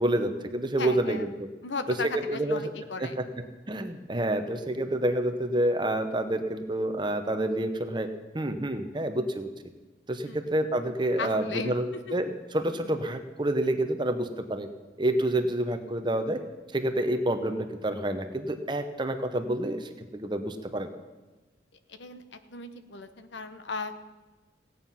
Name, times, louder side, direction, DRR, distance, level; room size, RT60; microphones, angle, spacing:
voice 1, 0.0-1.5 1.9-2.6 3.0-3.3 3.7-9.5 10.1-11.8 12.1-14.7 15.0-16.4 16.7-20.9, right 1 dB, 25° right, 7 dB, 0.9 m, -28 dB
voice 2, 0.8-1.3 1.6-3.2 10.3-10.4 11.2-11.8 12.1-12.2 21.9-23.9, left 4 dB, 75° left, 10 dB, 0.9 m, -36 dB
16.5 x 9.2 x 5.7 m, 1.2 s
head